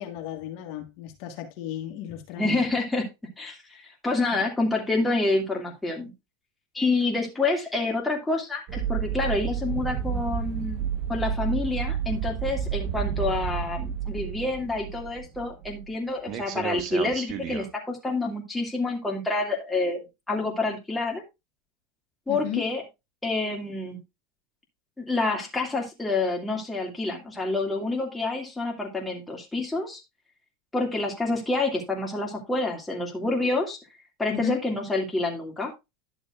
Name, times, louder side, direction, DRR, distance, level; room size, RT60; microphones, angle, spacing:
voice 1, 0.0-2.6 4.3-4.4 22.3-22.7 34.3-34.6, left 11 dB, 60° left, 1.7 m, -34 dB
voice 2, 2.4-3.1 3.4-6.1 6.7-20.0 20.3-21.2 22.3-22.8 23.2-24.0 25.0-30.0 30.7-33.8 34.2-35.7, left 2 dB, 10° left, 2.5 m, -28 dB
sound 1, 8.7-15.9 16.3-17.7, right 8 dB, 50° right, 1.3 m, -31 dB
11.0 x 6.9 x 2.5 m
hypercardioid pair, 105°, 0 cm